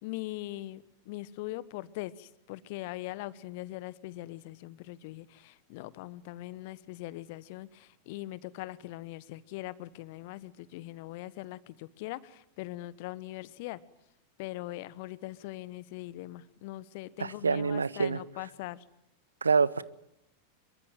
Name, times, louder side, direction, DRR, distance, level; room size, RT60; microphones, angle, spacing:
voice 1, 0.0-13.8 14.4-18.8, left 17 dB, 50° left, 1.2 m, -41 dB
voice 2, 17.2-18.2 19.4-19.8, right 5 dB, 75° right, 1.0 m, -26 dB
26.0 x 23.0 x 9.2 m
figure-of-eight pair, 90°, 0 cm